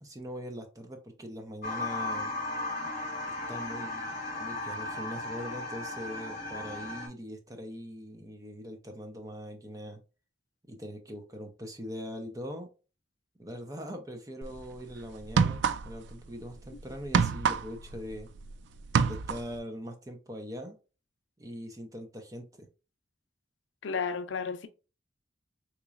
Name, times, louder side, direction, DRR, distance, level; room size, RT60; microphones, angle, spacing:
voice 1, 0.0-2.3 3.5-10.0 10.7-12.7 13.4-18.3 19.1-20.8 21.4-22.7, equal, 20° right, 0.6 m, -42 dB
sound 1, 1.6-7.1, left 2 dB, 40° left, 0.9 m, -36 dB
sound 2, 14.4-14.6 15.2-16.1 16.4-18.5 18.8-19.6, right 6 dB, 70° right, 0.3 m, -27 dB
voice 2, 23.8-24.7, left 5 dB, 80° left, 0.5 m, -33 dB
3.7 x 3.1 x 2.4 m
head